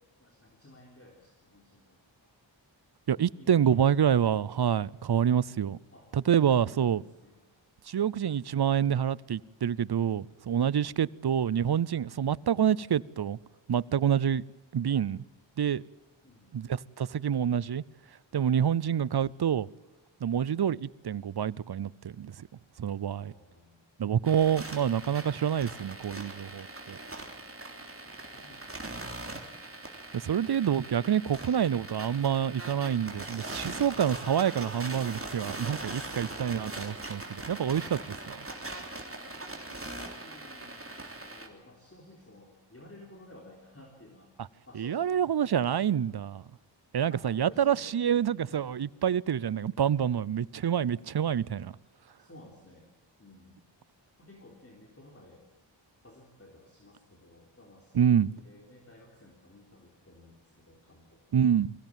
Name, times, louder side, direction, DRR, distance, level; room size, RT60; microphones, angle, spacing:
voice 1, 0.0-2.3 3.4-4.2 5.9-6.1 6.4-7.5 16.2-16.6 18.8-19.0 23.1-23.9 28.0-29.1 37.7-38.0 39.2-44.3 44.7-45.2 47.1-48.0 48.4-48.7 52.2-52.9 53.2-53.6 54.2-55.4 56.0-61.3, left 1 dB, 30° left, 3.7 m, -54 dB
voice 2, 3.1-5.8 6.1-7.0 7.9-13.4 13.7-14.4 14.7-15.2 15.6-15.8 16.5-17.8 18.3-19.7 20.2-22.5 22.8-23.3 24.0-27.0 30.1-38.0 38.3-38.5 44.8-46.4 46.9-51.7 57.9-58.3 61.3-61.7, right 8 dB, 55° right, 0.6 m, -27 dB
sound 1, 24.2-41.5, right 2 dB, 30° right, 3.5 m, -41 dB
22.5 x 16.5 x 9.0 m
wide cardioid pair, 65°, 47 cm